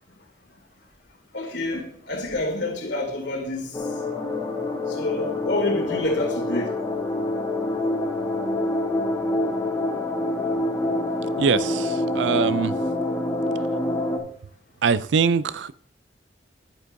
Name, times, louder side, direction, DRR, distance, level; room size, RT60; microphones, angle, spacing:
voice 1, 1.3-3.9 4.9-6.7, left 2 dB, 80° left, 2.2 m, -28 dB
sound 1, 3.7-14.2, left 2 dB, 20° left, 1.1 m, -26 dB
voice 2, 11.4-12.7 14.8-15.7, right 6 dB, 90° right, 0.4 m, -22 dB
11.0 x 8.9 x 2.6 m
head